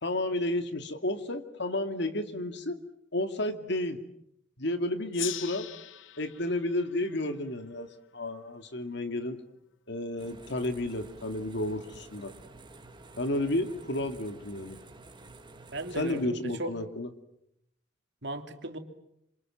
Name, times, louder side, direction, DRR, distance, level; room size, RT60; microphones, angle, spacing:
voice 1, 0.0-2.8 3.1-4.0 4.6-5.7 6.2-7.9 8.1-9.4 9.9-12.3 13.2-14.8 16.0-17.1, left 1 dB, 65° left, 8 dB, 2.4 m, -31 dB
Gong, 5.1-8.3, left 13 dB, 90° left, 1.0 m, -42 dB
sound 1, 10.2-16.3, right 2 dB, 25° right, 1.8 m, -50 dB
voice 2, 15.7-16.7 18.2-18.8, right 2 dB, 65° right, 5 dB, 3.0 m, -36 dB
27.0 x 26.5 x 7.6 m, 0.78 s
head